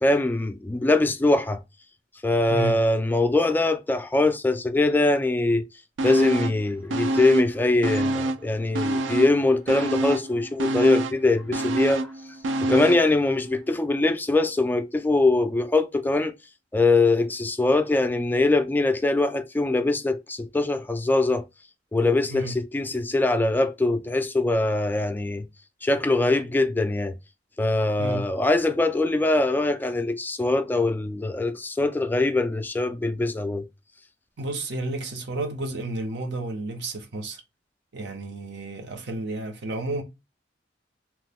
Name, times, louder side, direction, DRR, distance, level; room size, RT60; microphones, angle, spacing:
voice 1, 0.0-1.6 2.2-5.6 6.0-12.1 12.6-16.3 16.7-21.4 21.9-25.5 25.8-27.1 27.6-33.6, left 2 dB, 10° left, 0.3 m, -22 dB
sound 1, 6.0-6.6 6.9-8.5 8.7-13.1 13.5-13.6, right 1 dB, 85° right, 0.4 m, -27 dB
voice 2, 28.0-28.3 34.4-37.4 37.9-40.0, right 2 dB, 70° right, 0.8 m, -31 dB
3.0 x 2.1 x 3.4 m
head